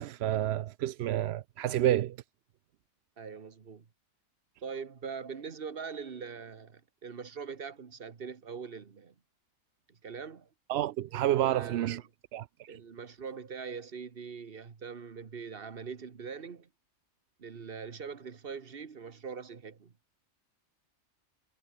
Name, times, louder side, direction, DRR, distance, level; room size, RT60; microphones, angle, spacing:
voice 1, 0.0-2.2 10.7-12.0 12.3-12.8, right 13 dB, 65° right, 0.7 m, -29 dB
voice 2, 3.2-3.8 4.6-9.1 9.9-10.5 11.1-12.0 12.7-16.7 17.4-19.9, right 6 dB, 45° right, 1.4 m, -42 dB
omnidirectional pair, 1.4 m